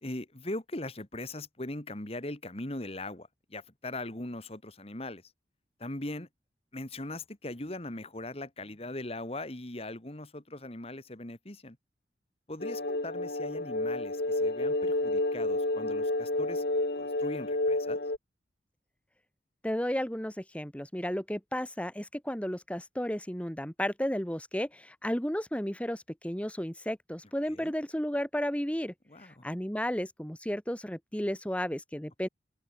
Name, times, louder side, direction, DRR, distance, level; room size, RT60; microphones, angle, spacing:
voice 1, 0.0-5.2 5.8-6.3 6.7-11.8 12.5-16.6 17.0-18.0 27.5-27.7 29.1-29.4, left 1 dB, 35° left, 2.1 m, -40 dB
sound 1, 12.6-18.2, left 2 dB, 65° left, 1.9 m, -30 dB
voice 2, 19.6-28.9 29.2-32.3, equal, 5° left, 1.7 m, -33 dB
open air
head